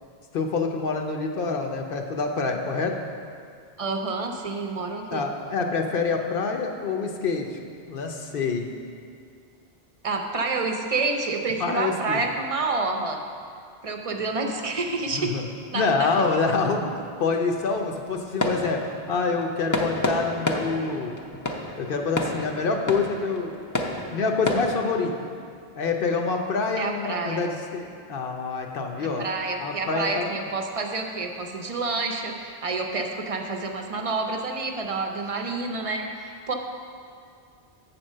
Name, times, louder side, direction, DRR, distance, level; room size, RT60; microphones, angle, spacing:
voice 1, 0.3-2.9 5.1-7.6 7.9-8.7 11.6-12.2 15.1-15.4 15.7-16.9 17.2-18.8 19.1-21.2 21.8-23.7 24.1-25.3 25.7-29.3 29.6-30.3, left 4 dB, 65° left, 3 dB, 0.8 m, -26 dB
voice 2, 3.8-5.3 10.0-13.2 13.8-15.3 15.7-16.1 26.8-27.4 29.0-36.5, right 3 dB, 40° right, 3 dB, 0.6 m, -28 dB
sound 1, 14.7-24.7, left 1 dB, 25° left, 0.4 m, -32 dB
8.1 x 4.4 x 6.4 m, 2.3 s
omnidirectional pair, 1.1 m